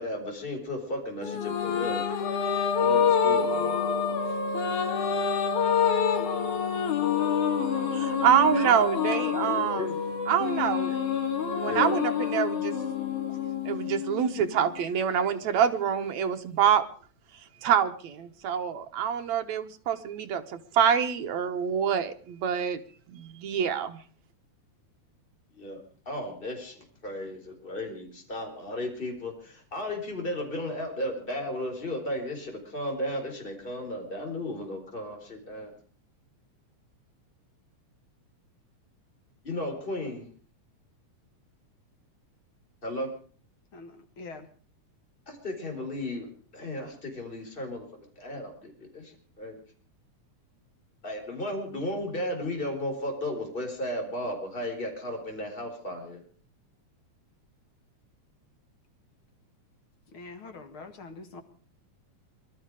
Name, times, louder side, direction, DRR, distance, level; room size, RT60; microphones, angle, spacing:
voice 1, 0.0-2.0 2.8-4.5 9.2-9.9 11.6-12.0 25.5-35.7 39.4-40.3 42.8-43.1 45.3-47.9 48.2-49.6 51.0-56.2, left 1 dB, 15° left, 3 dB, 4.3 m, -35 dB
sound 1, 1.2-14.8, left 7 dB, 85° left, 3.2 m, -27 dB
voice 2, 7.9-9.9 10.3-11.0 11.6-12.7 13.7-16.8 17.6-22.8 23.1-24.0, right 8 dB, 70° right, 7 dB, 2.5 m, -26 dB
voice 3, 43.7-44.5 60.1-61.4, left 3 dB, 50° left, 5 dB, 2.4 m, -44 dB
22.5 x 13.0 x 4.9 m, 0.42 s
omnidirectional pair, 3.4 m